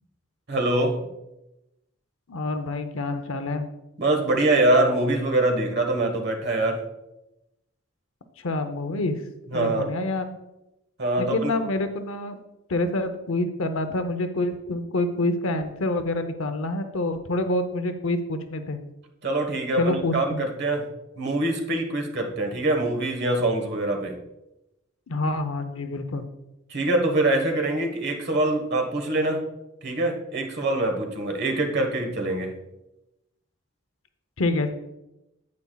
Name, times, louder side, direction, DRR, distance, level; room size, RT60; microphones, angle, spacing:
voice 1, 0.5-1.0 4.0-6.8 9.5-9.9 11.0-11.5 19.2-20.8 21.2-24.1 26.7-29.4 29.8-32.5, right 2 dB, 50° right, 3 dB, 1.3 m, -24 dB
voice 2, 2.3-3.7 8.4-9.2 9.5-10.3 11.2-12.4 12.7-18.8 19.8-20.4 25.1-26.2 34.4-34.7, left 2 dB, 70° left, 8 dB, 0.7 m, -27 dB
9.5 x 8.4 x 2.3 m, 0.92 s
head